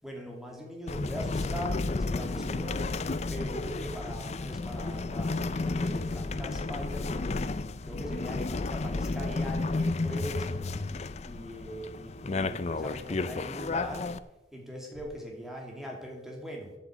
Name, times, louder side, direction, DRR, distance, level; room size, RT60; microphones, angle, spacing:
voice 1, 0.0-3.0 3.3-7.4 7.9-10.9 11.2-14.1 14.5-16.8, equal, ahead, 0 dB, 2.7 m, -41 dB
sound 1, 0.9-14.2, left 3 dB, 40° left, 0.5 m, -32 dB
8.6 x 8.6 x 8.2 m, 0.97 s
head